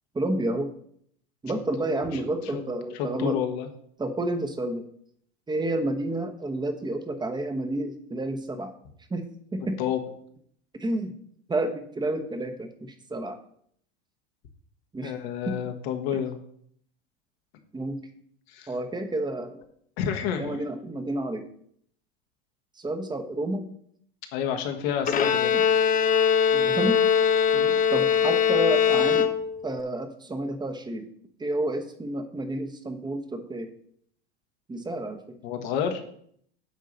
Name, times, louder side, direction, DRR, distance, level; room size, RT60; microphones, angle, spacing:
voice 1, 0.1-0.7 1.4-3.4 4.0-4.8 5.5-8.7 9.1-9.2 9.5-9.8 10.7-11.1 11.5-13.4 14.9-15.1 15.4-15.5 17.7-18.0 18.7-19.6 20.4-21.5 22.7-23.7 25.5-25.6 26.5-27.0 27.9-29.3 29.6-31.1 31.4-33.7 34.7-35.4, right 1 dB, 10° right, 7 dB, 1.1 m, -30 dB
voice 2, 3.0-3.7 9.8-10.0 15.0-16.4 18.5-18.7 20.0-20.6 24.3-25.5 27.5-27.8 35.4-36.0, left 8 dB, 60° left, 4 dB, 1.6 m, -29 dB
Bowed string instrument, 25.1-29.8, left 7 dB, 25° left, 0.7 m, -22 dB
9.4 x 3.7 x 6.6 m, 0.66 s
hypercardioid pair, 100°, 34 cm